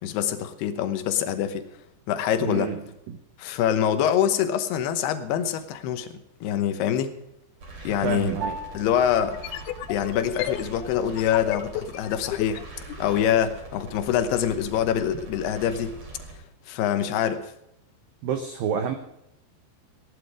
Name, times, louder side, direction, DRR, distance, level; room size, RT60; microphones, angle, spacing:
voice 1, 0.0-1.7 2.1-2.7 3.4-6.1 6.4-7.1 7.8-8.3 8.7-9.4 9.9-12.6 13.0-16.0 16.7-17.5, left 9 dB, 70° left, 9 dB, 2.7 m, -25 dB
voice 2, 2.4-3.2 8.0-8.6 18.2-19.0, right 7 dB, 85° right, 7 dB, 2.0 m, -29 dB
sound 1, 7.6-16.3, right 3 dB, 35° right, 3.9 m, -42 dB
Piano, 8.4-18.0, right 2 dB, 60° right, 2.8 m, -45 dB
sound 2, 9.2-13.2, left 12 dB, 85° left, 2.2 m, -33 dB
17.0 x 11.0 x 4.9 m, 0.82 s
omnidirectional pair, 5.4 m